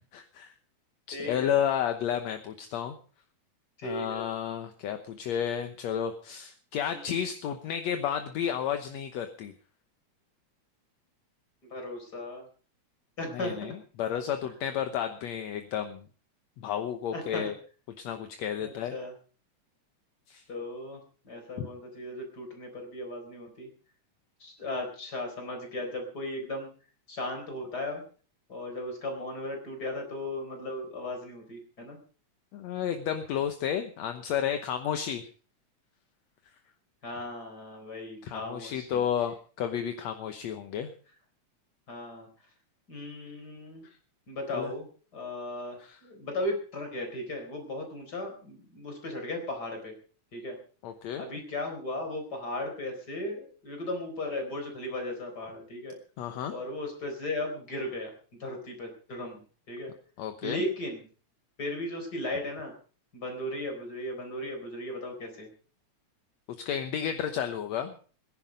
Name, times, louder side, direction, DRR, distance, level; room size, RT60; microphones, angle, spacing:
voice 1, 0.1-0.5 1.1-2.9 3.8-9.5 13.3-16.0 16.6-17.6 18.0-18.9 20.3-20.4 21.6-21.7 32.5-35.3 38.2-40.9 44.5-44.7 45.9-46.0 50.8-51.2 56.2-56.5 60.2-60.6 66.6-67.9, left 9 dB, 70° left, 7 dB, 2.2 m, -32 dB
voice 2, 1.1-1.6 3.8-4.3 6.9-7.1 11.7-12.5 13.2-13.7 14.4-14.5 17.1-17.5 18.6-19.1 20.5-23.7 24.4-26.7 27.1-28.0 28.5-32.0 37.0-39.0 41.9-42.3 42.9-43.8 44.3-44.9 45.1-49.9 50.3-50.6 51.2-55.9 56.5-58.1 58.4-59.4 59.7-59.9 60.4-61.0 61.6-62.7 63.1-65.5, left 1 dB, 30° left, 4 dB, 4.6 m, -36 dB
20.5 x 10.5 x 5.2 m, 0.40 s
omnidirectional pair, 3.4 m